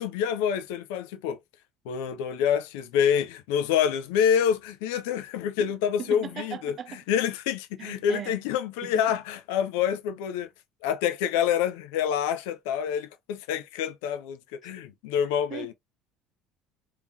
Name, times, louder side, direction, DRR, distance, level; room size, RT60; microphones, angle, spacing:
voice 1, 0.0-1.4 1.8-10.5 10.8-15.7, left 8 dB, 70° left, 0.5 m, -27 dB
voice 2, 6.0-7.0 7.8-8.3 8.8-9.0 15.5-15.7, right 8 dB, 45° right, 0.7 m, -38 dB
3.5 x 2.8 x 2.7 m
figure-of-eight pair, 60°, 0 cm